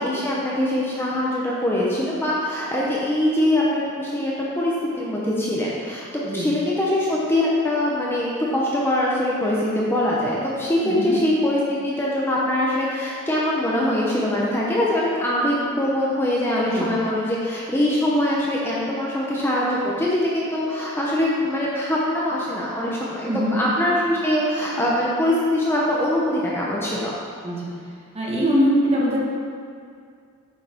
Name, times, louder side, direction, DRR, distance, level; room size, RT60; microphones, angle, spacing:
voice 1, 0.0-6.1 6.3-27.1, left 1 dB, 10° left, -5 dB, 0.9 m, -23 dB
voice 2, 27.4-27.8 28.1-29.2, equal, 25° right, -5 dB, 1.5 m, -22 dB
9.4 x 6.4 x 3.6 m, 2.3 s
head